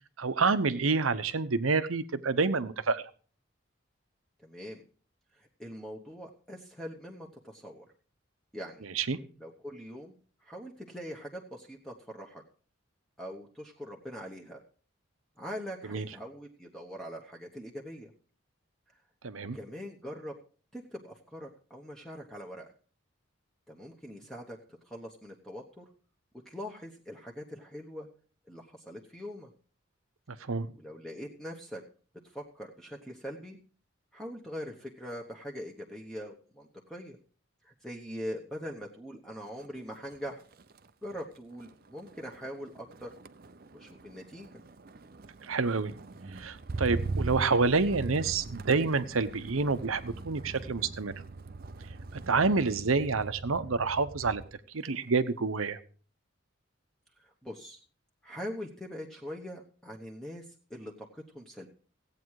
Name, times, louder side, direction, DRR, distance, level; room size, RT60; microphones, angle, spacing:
voice 1, 0.2-3.0 8.9-9.2 15.9-16.0 19.2-19.6 30.3-30.7 45.5-45.9 46.4-51.1 52.3-54.4 54.7-55.8, right 4 dB, 85° right, 13 dB, 0.9 m, -28 dB
voice 2, 4.4-4.8 5.3-7.9 8.5-8.9 9.4-10.1 10.4-12.4 13.2-14.6 15.4-18.1 19.5-20.3 20.7-22.7 23.7-24.6 24.9-25.8 26.4-28.1 28.5-29.5 30.4-30.5 30.7-31.8 32.3-33.6 34.1-37.2 37.6-40.4 41.0-43.1 43.7-44.6 57.2-57.8 58.2-61.7, equal, ahead, 0 dB, 1.0 m, -42 dB
Motor vehicle (road), 39.5-39.8 40.1-54.6 54.9-55.4, right 3 dB, 45° right, 0.6 m, -41 dB
16.0 x 8.6 x 4.7 m, 0.41 s
head